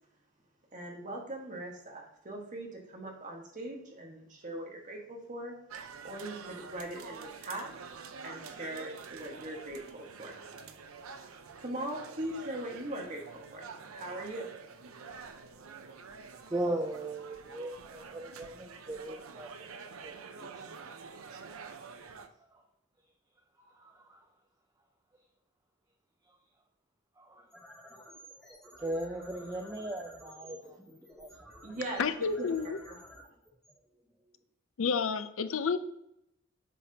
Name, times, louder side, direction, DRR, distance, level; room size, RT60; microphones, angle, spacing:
voice 1, 0.7-5.5 6.0-7.7 8.2-10.4 11.6-14.5 31.6-33.0, right 1 dB, 40° right, 0 dB, 1.5 m, -40 dB
sound 1, 5.7-22.3, right 5 dB, 85° right, 0.6 m, -47 dB
voice 2, 16.5-19.7 20.0-20.7 22.5-22.6 23.7-24.2 27.2-27.5 28.8-31.3, right 1 dB, 15° right, 3 dB, 0.5 m, -38 dB
sound 2, 27.3-34.4, equal, 5° left, 1.3 m, -53 dB
voice 3, 32.0-32.8 34.8-35.8, left 5 dB, 70° left, 11 dB, 0.5 m, -30 dB
8.1 x 5.9 x 2.8 m, 0.78 s
head